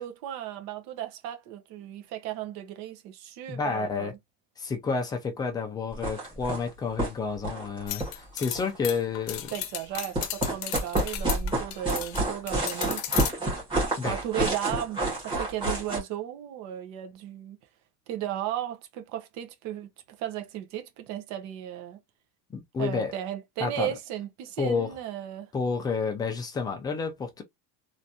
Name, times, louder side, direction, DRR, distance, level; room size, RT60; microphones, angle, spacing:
voice 1, 0.0-4.2 9.5-13.0 14.0-17.6 18.1-22.0 22.8-25.5, right 12 dB, 50° right, 0.7 m, -35 dB
voice 2, 3.5-4.1 4.6-9.5 14.0-14.2 22.5-23.1 23.6-24.0 24.6-24.9 25.5-27.4, left 5 dB, 10° left, 0.4 m, -30 dB
sound 1, 5.9-6.7 7.0-7.1 7.4-8.8 9.9-16.0, right 2 dB, 15° right, 1.6 m, -29 dB
sound 2, 7.9-12.2 12.5-13.3, left 13 dB, 65° left, 0.7 m, -34 dB
3.3 x 2.5 x 2.7 m
cardioid pair, 170°, 36 cm